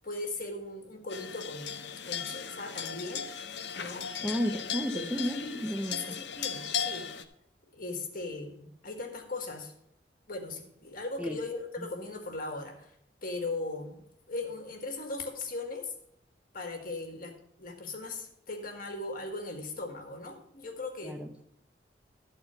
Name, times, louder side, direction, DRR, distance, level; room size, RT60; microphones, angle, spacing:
voice 1, 0.0-3.3 3.8-4.1 4.9-5.6 5.9-7.1 7.7-9.7 10.3-13.0 13.2-15.9 16.5-21.2, left 2 dB, 50° left, 3 dB, 1.8 m, -39 dB
sound 1, 1.1-7.2, left 7 dB, 70° left, 0.8 m, -37 dB
voice 2, 4.2-6.0 11.2-11.4 11.8-11.9 21.0-21.4, equal, 5° right, 4 dB, 0.6 m, -33 dB
13.0 x 4.4 x 6.9 m, 0.73 s
head